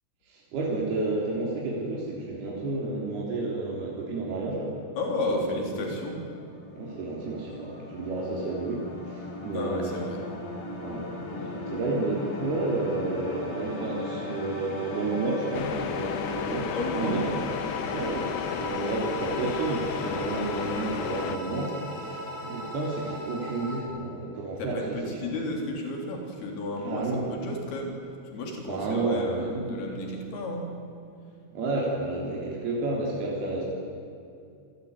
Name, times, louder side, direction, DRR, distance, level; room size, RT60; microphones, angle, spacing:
voice 1, 0.3-4.8 5.3-5.4 5.7-5.9 6.8-10.0 10.8-17.5 17.9-25.3 26.8-27.2 28.7-29.8 31.5-33.6, right 2 dB, 70° right, -4 dB, 5.4 m, -31 dB
voice 2, 5.0-6.3 9.5-10.3 16.7-17.2 24.6-30.7, left 2 dB, 70° left, 1 dB, 5.5 m, -33 dB
sound 1, 5.9-23.8, left 2 dB, 35° left, 4.9 m, -37 dB
sound 2, 15.5-21.4, left 12 dB, 90° left, 2.9 m, -34 dB
27.5 x 20.0 x 9.7 m, 2.6 s
omnidirectional pair, 4.6 m